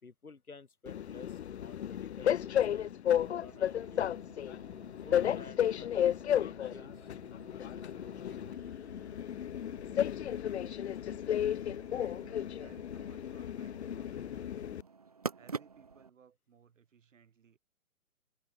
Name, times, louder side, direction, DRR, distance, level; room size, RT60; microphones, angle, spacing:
voice 1, 0.0-4.2 5.0-8.0 8.3-8.9, left 4 dB, 90° left, 1.8 m, -53 dB
Train, 0.9-14.8, left 10 dB, 50° left, 0.6 m, -33 dB
sound 1, 3.2-16.1, right 5 dB, 30° right, 0.4 m, -49 dB
voice 2, 11.2-14.8 15.3-17.6, right 7 dB, 60° right, 6.3 m, -62 dB
figure-of-eight pair, 130°, 42 cm